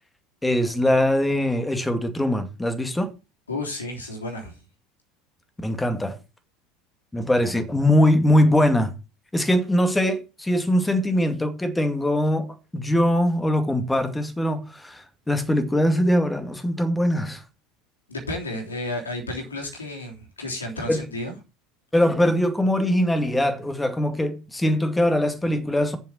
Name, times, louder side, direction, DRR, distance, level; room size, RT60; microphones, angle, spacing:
voice 1, 0.4-3.1 5.6-6.2 7.1-8.9 9.3-17.4 20.9-21.0 21.9-26.0, left 1 dB, 10° left, 2.1 m, -22 dB
voice 2, 3.5-4.6 18.1-21.3, left 1 dB, 85° left, 3.2 m, -32 dB
7.2 x 5.8 x 7.5 m
figure-of-eight pair, 75°, 0 cm